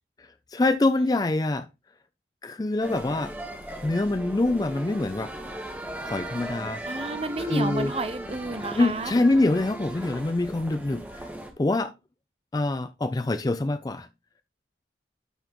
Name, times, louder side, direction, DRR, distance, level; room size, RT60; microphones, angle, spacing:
voice 1, 0.5-1.7 2.4-3.3 3.8-5.3 6.0-6.8 7.4-7.9 8.7-11.2 11.6-11.9 12.5-14.1, left 2 dB, 20° left, 0.3 m, -25 dB
sound 1, 2.8-11.5, right 1 dB, 10° right, 1.2 m, -37 dB
voice 2, 6.9-9.1, right 2 dB, 35° right, 0.7 m, -31 dB
12.0 x 4.1 x 3.0 m
head